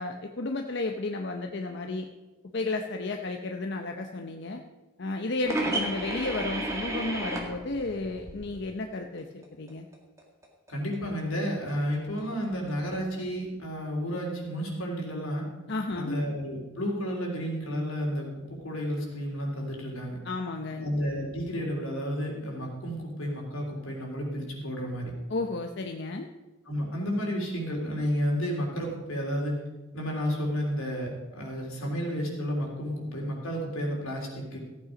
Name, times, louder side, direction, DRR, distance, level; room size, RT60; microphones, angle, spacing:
voice 1, 0.0-2.1 2.5-4.6 5.0-9.9 15.7-16.2 20.2-20.9 25.3-26.3, left 2 dB, 55° left, 4 dB, 0.7 m, -33 dB
sound 1, 5.4-8.6 8.9-13.2, right 1 dB, 15° right, 1.9 m, -33 dB
voice 2, 10.7-15.4 15.9-20.2 20.7-25.1 26.7-29.6 29.9-34.6, equal, 85° left, -1 dB, 3.5 m, -31 dB
14.5 x 8.7 x 5.1 m, 1.2 s
head